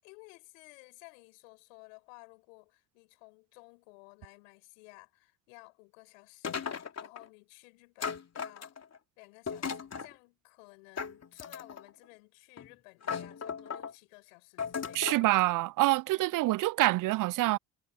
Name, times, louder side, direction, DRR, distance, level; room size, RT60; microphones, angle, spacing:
voice 1, 0.0-8.8 9.2-15.0 16.1-16.3, left 30 dB, 85° left, 7.4 m, -55 dB
sound 1, 6.4-7.2 8.0-9.0 9.5-10.1 11.0-11.9 12.6-12.7 13.0-13.9 14.6-15.3, left 6 dB, 40° left, 3.2 m, -37 dB
voice 2, 14.9-17.6, right 18 dB, 55° right, 0.5 m, -26 dB
hypercardioid pair, 55°, 38 cm